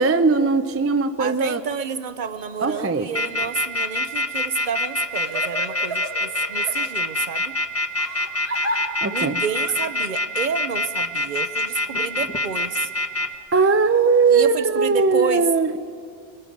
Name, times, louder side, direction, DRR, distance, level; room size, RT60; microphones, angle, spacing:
voice 1, 0.0-1.6 2.6-3.1 9.0-9.4 13.5-15.8, right 4 dB, 20° right, 10 dB, 0.4 m, -19 dB
voice 2, 1.2-7.6 9.1-12.9 14.3-15.5, right 6 dB, 55° right, 12 dB, 0.8 m, -30 dB
Crying sobbing, 2.5-2.8 3.5-3.6 4.6-6.8 8.0-8.8 9.4-9.7, right 1 dB, 85° right, 4.5 m, -33 dB
sound 1, 3.1-13.3, left 2 dB, 15° left, 0.8 m, -24 dB
23.0 x 22.5 x 5.2 m, 2.3 s
omnidirectional pair, 1.0 m